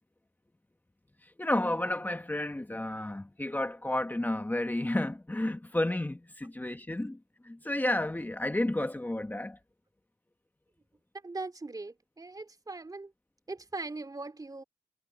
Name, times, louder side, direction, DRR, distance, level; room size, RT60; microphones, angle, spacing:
voice 1, 1.2-9.6, left 1 dB, 15° left, 1.3 m, -31 dB
voice 2, 11.2-13.1 13.5-14.6, right 3 dB, 30° right, 2.8 m, -40 dB
cardioid pair, 55°, 12 cm